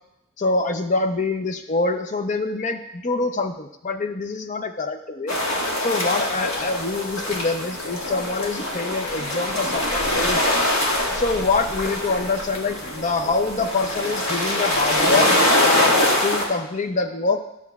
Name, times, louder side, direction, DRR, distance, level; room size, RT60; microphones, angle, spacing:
voice 1, 0.4-5.4 5.8-10.6 11.1-15.9 16.2-17.4, left 3 dB, 35° left, 7 dB, 0.5 m, -25 dB
sound 1, 5.3-16.5, left 1 dB, 80° left, 1.8 m, -23 dB
13.0 x 7.2 x 2.3 m, 0.87 s
head